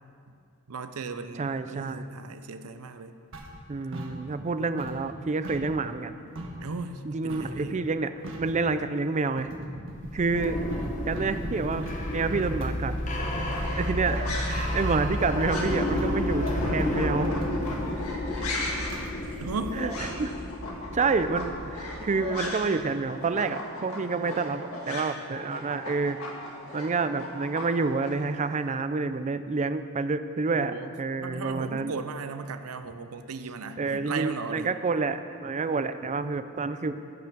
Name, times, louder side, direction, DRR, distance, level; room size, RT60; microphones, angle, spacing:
voice 1, 0.7-3.1 4.3-4.6 6.6-7.8 19.4-19.8 30.5-30.9 31.2-34.7, right 4 dB, 85° right, 9 dB, 0.6 m, -36 dB
voice 2, 1.3-2.1 3.7-6.1 7.0-8.1 8.4-9.5 10.1-10.6 11.1-12.9 13.8-17.4 19.7-20.3 20.9-31.9 33.8-37.0, right 4 dB, 35° right, 11 dB, 0.4 m, -28 dB
sound 1, 3.3-4.5 4.8-6.7 7.3-7.6 7.9-8.0 8.2-8.6 9.4-20.2, right 1 dB, 65° right, 1.5 m, -38 dB
sound 2, 9.9-22.7, left 1 dB, 35° left, 1.2 m, -32 dB
sound 3, 13.1-22.8 23.1-28.1, left 2 dB, 80° left, 1.8 m, -37 dB
15.0 x 6.0 x 6.1 m, 2.3 s
head